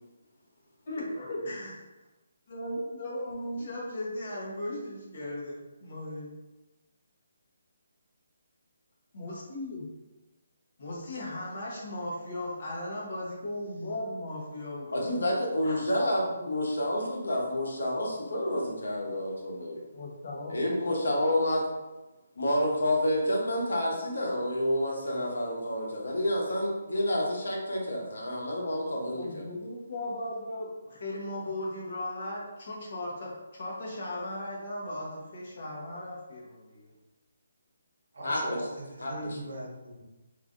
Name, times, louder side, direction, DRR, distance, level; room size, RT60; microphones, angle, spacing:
voice 1, 0.9-1.8 2.5-6.3 9.1-9.8 10.8-15.1 15.6-16.0 16.4-16.5 19.9-20.5 20.8-21.0 28.9-36.9, left 1 dB, 45° left, -4 dB, 0.9 m, -37 dB
voice 2, 14.9-19.8 20.5-21.6 22.4-29.5 38.2-38.6 39.0-39.4, left 1 dB, 90° left, -1 dB, 0.9 m, -29 dB
voice 3, 38.1-40.0, right 1 dB, 75° right, -2 dB, 1.0 m, -39 dB
3.1 x 2.6 x 2.5 m, 1.1 s
hypercardioid pair, 170°, 0 cm